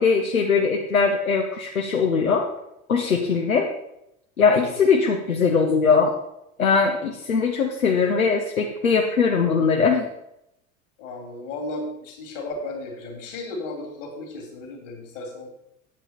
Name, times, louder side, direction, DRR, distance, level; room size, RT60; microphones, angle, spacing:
voice 1, 0.0-2.5 2.9-3.7 4.4-6.1 6.6-10.0, left 5 dB, 85° left, 1 dB, 0.9 m, -20 dB
voice 2, 4.5-4.8 11.0-15.5, left 2 dB, 65° left, 1 dB, 2.9 m, -35 dB
8.6 x 8.1 x 4.3 m, 0.82 s
figure-of-eight pair, 65°, 41 cm